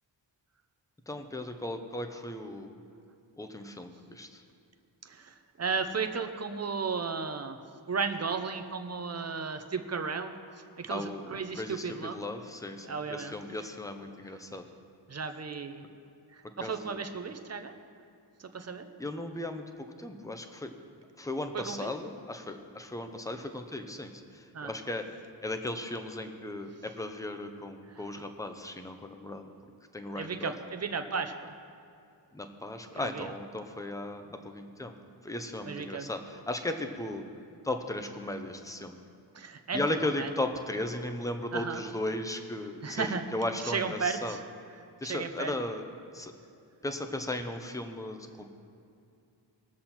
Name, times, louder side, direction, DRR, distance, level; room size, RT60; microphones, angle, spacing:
voice 1, 1.1-2.8 3.4-4.3 10.9-14.6 16.6-17.0 19.0-19.6 20.0-20.7 21.2-24.1 24.6-25.1 25.4-29.4 29.9-30.5 32.3-34.9 35.2-37.2 37.6-39.0 39.7-44.4 45.0-45.8 46.1-46.3 46.8-48.4, left 1 dB, 5° left, 6 dB, 0.7 m, -36 dB
voice 2, 5.6-7.6 7.9-10.3 10.8-12.2 12.9-13.3 15.1-15.8 16.6-17.7 18.5-18.9 21.5-21.9 24.5-24.7 30.1-31.5 32.9-33.3 35.7-36.1 39.4-40.3 41.5-41.8 42.8-43.2 43.6-44.4 45.0-45.5, right 5 dB, 35° right, 7 dB, 0.7 m, -34 dB
20.5 x 7.4 x 4.4 m, 2.5 s
wide cardioid pair, 160°, 46 cm